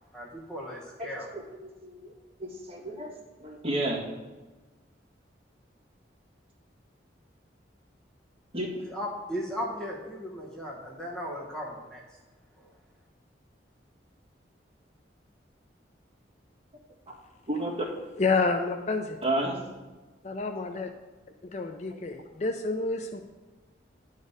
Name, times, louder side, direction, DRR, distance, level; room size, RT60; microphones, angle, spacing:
voice 1, 0.1-1.3 8.9-12.0, equal, 5° left, -3 dB, 1.0 m, -36 dB
voice 2, 1.8-2.1 2.4-3.1 3.4-4.0 8.5-8.8 17.5-17.9 19.2-19.6, right 1 dB, 30° right, -5 dB, 1.8 m, -31 dB
voice 3, 18.2-19.2 20.2-20.9 21.4-23.2, left 3 dB, 35° left, 6 dB, 0.4 m, -29 dB
10.5 x 4.0 x 5.1 m, 1.2 s
head